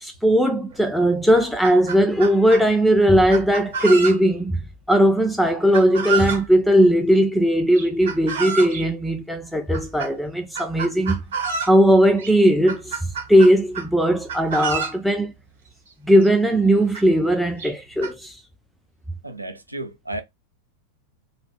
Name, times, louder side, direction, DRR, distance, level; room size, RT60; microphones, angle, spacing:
voice 1, 0.0-4.6 4.9-11.2 11.7-15.3 16.0-18.4, equal, ahead, 0.4 m, -18 dB
Chicken rooster, 0.7-0.8 1.2-2.6 3.3-4.4 5.7-6.5 7.8-8.8 9.7-10.1 10.6-11.8 12.2-12.3 12.7-13.9 14.3-15.0 15.9-16.0 16.2-16.3 16.9-17.0 17.6-18.1, right 6 dB, 65° right, 1.0 m, -29 dB
voice 2, 19.2-20.2, right 1 dB, 85° right, 0.5 m, -32 dB
2.6 x 2.4 x 3.5 m
figure-of-eight pair, 90°, 0 cm